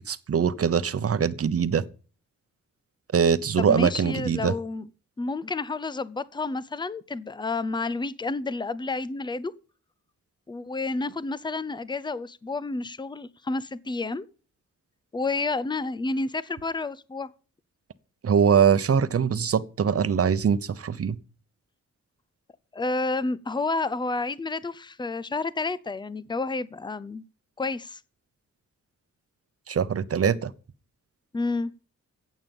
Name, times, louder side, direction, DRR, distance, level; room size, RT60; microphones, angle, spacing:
voice 1, 0.1-1.8 3.1-4.5 18.2-21.2 29.7-30.5, right 7 dB, 50° right, 0.9 m, -22 dB
voice 2, 3.6-4.9 5.2-9.5 10.5-14.2 15.1-17.3 22.7-27.2 27.6-28.0 31.3-31.7, left 3 dB, 15° left, 0.6 m, -30 dB
15.0 x 8.5 x 5.3 m
wide cardioid pair, 145°, 30 cm